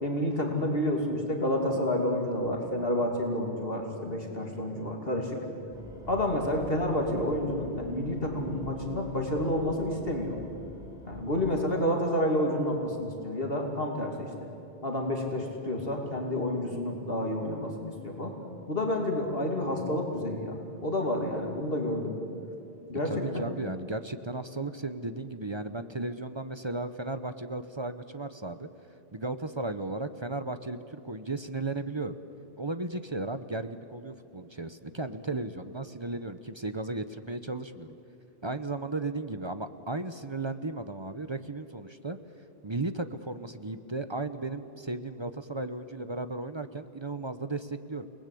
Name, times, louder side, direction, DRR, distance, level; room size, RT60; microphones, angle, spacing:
voice 1, 0.0-5.4 6.1-10.4 11.1-14.3 14.8-18.3 18.7-22.1 22.9-23.4, left 1 dB, 65° left, 1 dB, 3.0 m, -29 dB
sound 1, 5.7-11.6, left 1 dB, 5° right, 4.2 m, -45 dB
voice 2, 23.0-28.7 29.1-32.2 32.6-37.9 38.4-42.2 42.6-48.0, right 2 dB, 30° right, 11 dB, 0.8 m, -35 dB
29.0 x 19.5 x 8.5 m, 2.9 s
omnidirectional pair, 1.1 m